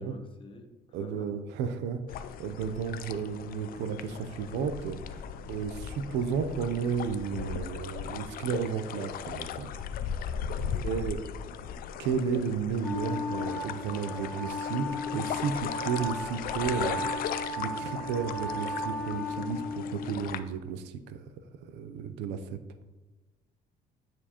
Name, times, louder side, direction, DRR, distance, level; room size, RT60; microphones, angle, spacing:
voice 1, 0.0-1.3 10.3-10.9 11.2-11.3, left 1 dB, 30° left, 5 dB, 0.9 m, -50 dB
voice 2, 0.9-5.2 5.5-9.7 10.8-11.2 12.0-21.2 21.6-22.6, right 6 dB, 90° right, 10 dB, 0.5 m, -33 dB
sound 1, 2.1-20.4, left 8 dB, 60° left, 0.4 m, -38 dB
Wind instrument woodwind instrument, 12.8-20.3, left 2 dB, 5° left, 0.5 m, -35 dB
9.6 x 4.4 x 2.9 m, 1.2 s
cardioid pair, 110°, 17 cm